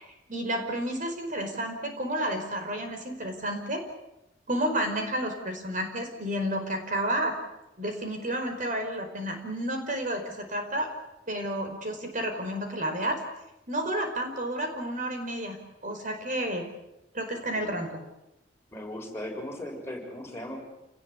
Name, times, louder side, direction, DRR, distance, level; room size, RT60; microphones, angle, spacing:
voice 1, 0.0-3.9 4.5-7.4 7.8-10.9 11.3-13.2 13.7-16.7 17.1-18.0, right 1 dB, 45° right, 5 dB, 4.9 m, -31 dB
voice 2, 18.7-20.6, left 1 dB, 15° left, 1 dB, 6.5 m, -38 dB
29.0 x 19.5 x 8.4 m, 0.91 s
head